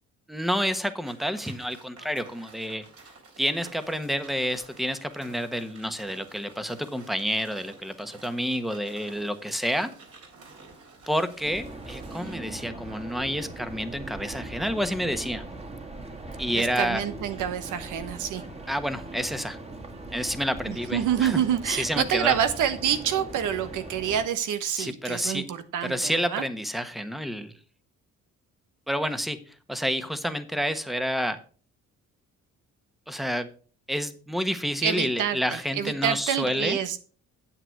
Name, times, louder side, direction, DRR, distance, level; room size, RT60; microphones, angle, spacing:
voice 1, 0.3-2.8 3.4-9.9 11.1-15.4 16.4-17.0 18.7-19.6 20.1-21.4 21.7-22.4 24.8-25.5 25.8-27.5 28.9-31.4 33.1-33.5 33.9-36.8, equal, ahead, 10 dB, 1.2 m, -29 dB
sound 1, 1.0-12.4, right 4 dB, 50° right, 3.4 m, -51 dB
sound 2, 11.4-24.3, right 2 dB, 20° right, 1.9 m, -40 dB
voice 2, 16.5-18.4 20.7-26.4 34.8-37.0, right 9 dB, 85° right, 11 dB, 1.3 m, -27 dB
9.0 x 7.8 x 4.6 m, 0.40 s
cardioid pair, 90°, 30 cm